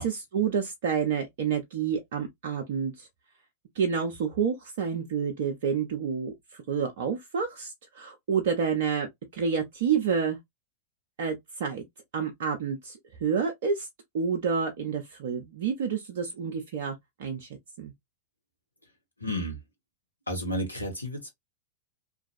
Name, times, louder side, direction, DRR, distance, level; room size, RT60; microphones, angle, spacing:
voice 1, 0.0-3.1 3.8-10.4 11.2-11.8 12.1-13.9 14.1-17.5 17.8-17.9, right 6 dB, 55° right, 0.5 m, -29 dB
voice 2, 19.2-19.6 20.3-21.3, equal, 85° left, 0.9 m, -31 dB
2.5 x 2.2 x 2.5 m
figure-of-eight pair, 90°, 0 cm